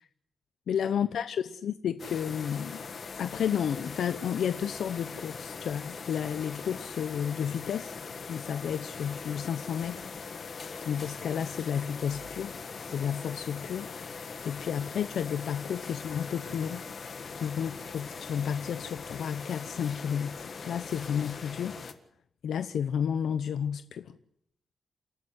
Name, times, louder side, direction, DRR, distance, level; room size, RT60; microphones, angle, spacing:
voice 1, 0.7-2.8 3.2-7.9 8.3-10.1 10.8-13.9 14.4-21.8 22.4-24.2, left 8 dB, 85° left, 0.8 m, -32 dB
sound 1, 2.0-21.9, left 5 dB, 45° left, 1.7 m, -41 dB
29.0 x 13.5 x 7.9 m
wide cardioid pair, 165°, 0 cm